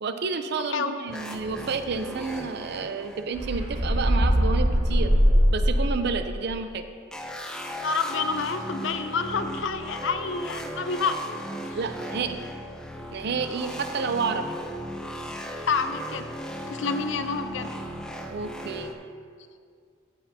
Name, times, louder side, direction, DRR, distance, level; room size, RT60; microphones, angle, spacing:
voice 1, 0.0-5.1 5.5-6.8 11.7-12.4 13.1-14.6 18.3-18.9, right 4 dB, 55° right, 8 dB, 0.5 m, -30 dB
sound 1, 1.1-4.3 7.1-18.9, equal, 5° left, 0.5 m, -37 dB
sound 2, 3.3-6.1, equal, 85° right, 2.2 m, -21 dB
voice 2, 7.8-11.2 11.6-11.8 15.7-16.3 16.7-17.7, left 4 dB, 65° left, 9 dB, 0.5 m, -28 dB
14.5 x 6.6 x 2.8 m, 2.2 s
head